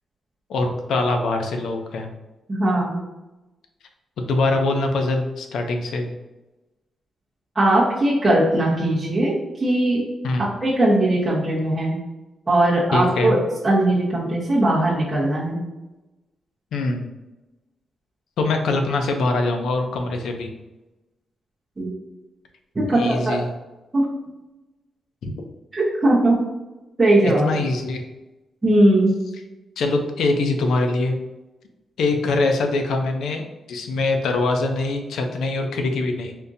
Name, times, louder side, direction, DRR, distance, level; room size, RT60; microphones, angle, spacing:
voice 1, 0.5-2.1 4.2-6.1 10.2-10.5 12.9-13.4 16.7-17.1 18.4-20.5 22.9-23.5 25.2-25.3 27.2-28.0 29.8-31.2 32.0-33.4 33.7-36.3, left 2 dB, 85° left, 4 dB, 0.5 m, -23 dB
voice 2, 2.5-2.9 7.5-9.3 9.6-10.0 10.6-12.0 12.5-13.4 13.6-15.6 21.8-21.9 22.7-23.4 23.9-24.1 25.7-26.4 27.0-27.4 28.6-29.2, right 1 dB, 20° right, -9 dB, 0.9 m, -19 dB
3.6 x 2.7 x 2.6 m, 1.0 s
wide cardioid pair, 155°, 0 cm